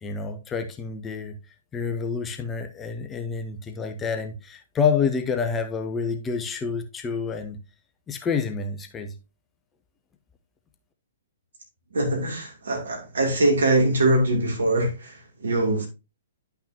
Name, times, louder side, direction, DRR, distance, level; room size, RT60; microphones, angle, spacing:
voice 1, 0.0-1.4 1.7-7.6 8.1-9.1, left 5 dB, 15° left, 0.7 m, -28 dB
voice 2, 11.9-15.9, right 2 dB, 65° right, 2.7 m, -23 dB
10.0 x 5.8 x 2.7 m
figure-of-eight pair, 120°, 0 cm